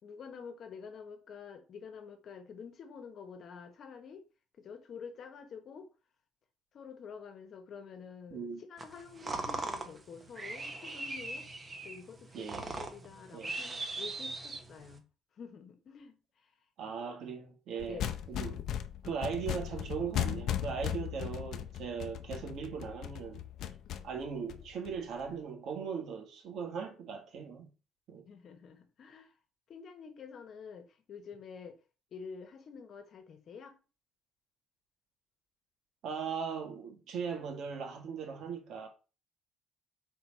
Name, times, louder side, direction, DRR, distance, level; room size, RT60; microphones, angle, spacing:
voice 1, 0.0-4.2 4.6-5.9 6.7-11.5 11.8-15.0 15.4-16.5 17.0-17.1 17.9-18.1 20.8-21.0 28.3-29.3 29.7-31.8 32.1-33.8, left 6 dB, 45° left, 1.2 m, -48 dB
voice 2, 8.3-8.6 12.3-12.7 13.3-13.5 16.8-18.7 19.0-23.4 24.0-27.7 28.1-28.3 36.0-38.9, right 6 dB, 60° right, 1.7 m, -39 dB
sound 1, 8.8-15.0, right 2 dB, 20° right, 0.9 m, -40 dB
sound 2, 17.8-25.2, left 11 dB, 60° left, 0.6 m, -37 dB
4.7 x 4.3 x 5.5 m
cardioid pair, 150°, 0 cm